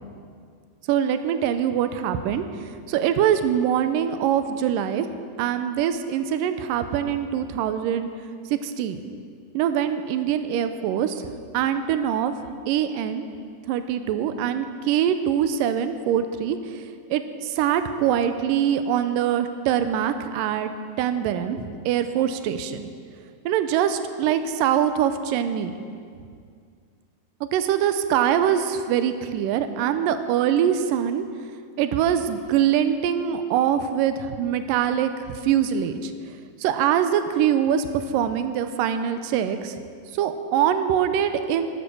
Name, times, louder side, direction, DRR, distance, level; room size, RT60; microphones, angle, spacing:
voice 1, 0.9-2.5 2.9-5.1 5.4-8.1 8.5-9.0 9.5-11.2 11.5-12.3 12.7-13.3 13.7-20.7 21.0-22.9 23.5-25.8 27.4-31.3 31.8-36.1 36.6-39.8 40.1-41.7, right 9 dB, 85° right, 9 dB, 2.3 m, -23 dB
13.0 x 12.5 x 6.0 m, 2.2 s
omnidirectional pair, 3.9 m